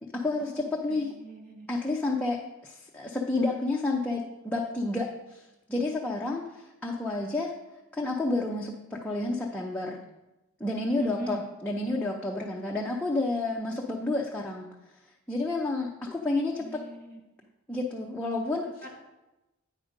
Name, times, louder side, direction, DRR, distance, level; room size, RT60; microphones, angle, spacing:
voice 1, 0.0-1.1 1.7-7.5 7.9-10.0 10.6-14.7 15.3-16.8 17.7-18.9, left 2 dB, 5° left, -2 dB, 0.5 m, -30 dB
voice 2, 0.9-1.7 11.0-11.4 16.6-17.2 18.8-19.0, right 1 dB, 40° right, 1 dB, 0.8 m, -41 dB
8.8 x 5.1 x 5.1 m, 1.0 s
head